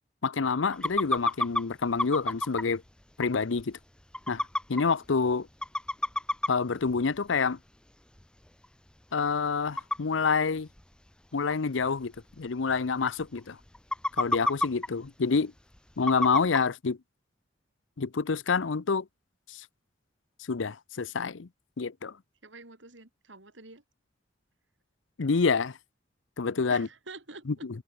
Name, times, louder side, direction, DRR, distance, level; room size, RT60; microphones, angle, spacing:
voice 1, 0.2-2.8 3.2-3.8 4.3-4.4 4.7-5.5 6.5-7.6 9.1-10.7 11.3-13.6 14.2-15.5 16.0-17.0 18.0-19.1 19.5-19.6 20.5-21.5 21.8-22.1 25.2-25.8 26.4-26.9, left 5 dB, 80° left, 0.7 m, -27 dB
sound 1, 0.7-1.6 2.0-2.7 3.2-3.3 3.6-3.7 4.1-4.8 5.3-5.4 5.6-6.5 6.9-7.0 8.2-8.3 8.6-8.7 9.8-10.0 10.8-10.9 11.5-11.6 11.8-11.9 12.2-12.3 12.7-12.8 13.0-13.4 13.7-14.9 16.1-16.6, left 1 dB, 5° left, 0.4 m, -28 dB
voice 2, 22.4-23.8 26.7-27.7, right 3 dB, 75° right, 4.0 m, -47 dB
head